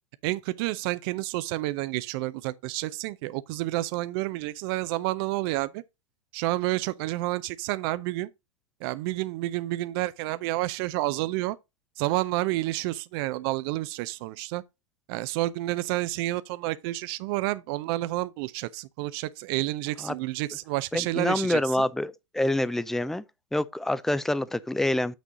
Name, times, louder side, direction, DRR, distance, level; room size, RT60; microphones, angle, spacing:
voice 1, 0.2-5.8 6.3-8.3 8.8-11.6 12.0-14.6 15.1-21.9, right 18 dB, 50° right, 0.5 m, -29 dB
voice 2, 20.9-23.2 23.5-25.1, left 1 dB, ahead, 0.4 m, -26 dB
7.9 x 6.2 x 3.8 m
hypercardioid pair, 115°, 16 cm